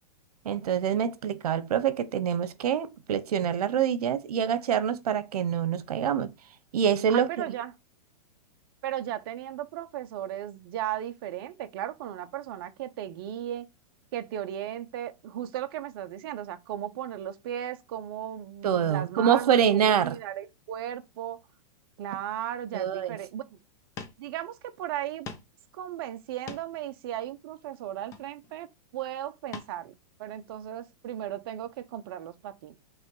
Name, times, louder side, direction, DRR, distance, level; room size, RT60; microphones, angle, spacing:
voice 1, 0.4-6.3 6.7-7.3 18.6-20.2 22.7-23.2, right 8 dB, 75° right, 1.0 m, -25 dB
voice 2, 7.1-7.7 8.8-13.7 14.1-21.4 22.0-23.6 24.2-25.3 25.7-28.7 28.9-29.9 30.2-32.7, right 11 dB, 35° right, 0.8 m, -36 dB
sound 1, 23.7-23.8 24.0-24.2 24.6-24.7 25.3-25.6 26.2-26.9 28.0-28.6 29.5-29.8 30.2-30.3, left 5 dB, 15° left, 0.6 m, -43 dB
6.0 x 3.3 x 5.4 m
supercardioid pair, 170°, 20 cm